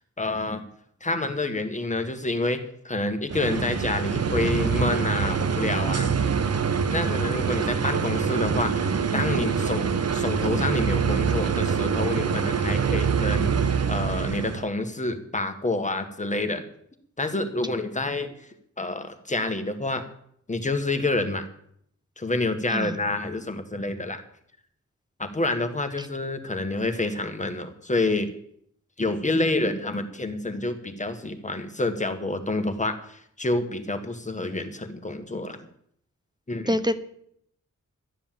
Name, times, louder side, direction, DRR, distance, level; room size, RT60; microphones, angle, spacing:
voice 1, 0.2-0.6 1.0-6.1 6.9-8.9 9.1-13.5 13.9-16.6 17.2-18.3 18.8-20.1 20.5-21.4 22.2-24.2 25.2-28.3 29.0-35.6 36.5-36.8, left 2 dB, 25° left, 7 dB, 1.5 m, -28 dB
sound 1, 3.3-14.6, right 6 dB, 55° right, 1.0 m, -25 dB
voice 2, 36.7-37.0, equal, 15° right, 10 dB, 0.8 m, -25 dB
13.0 x 9.8 x 7.5 m, 0.69 s
wide cardioid pair, 125°, 31 cm